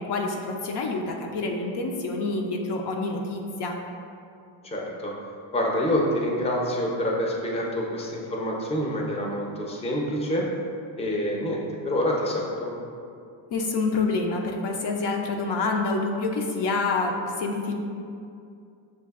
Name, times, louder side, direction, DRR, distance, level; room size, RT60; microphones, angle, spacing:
voice 1, 0.0-3.8 13.5-17.7, left 3 dB, 60° left, 1 dB, 0.5 m, -27 dB
voice 2, 4.6-5.1 5.5-10.4 11.0-12.7, equal, 15° left, -2 dB, 0.5 m, -27 dB
6.9 x 2.5 x 2.4 m, 2.5 s
cardioid pair, 105°, 47 cm